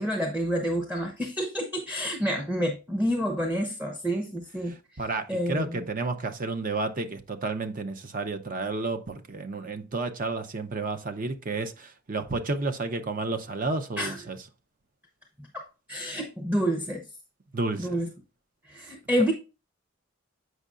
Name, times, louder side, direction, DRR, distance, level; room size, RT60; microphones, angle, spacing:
voice 1, 0.0-5.0 5.3-5.9 14.0-14.2 15.5-17.1 17.8-18.1 18.6-19.3, equal, 10° right, 0.8 m, -29 dB
voice 2, 5.0-14.4 17.5-18.0, right 3 dB, 45° right, 0.7 m, -31 dB
7.9 x 5.4 x 2.5 m
head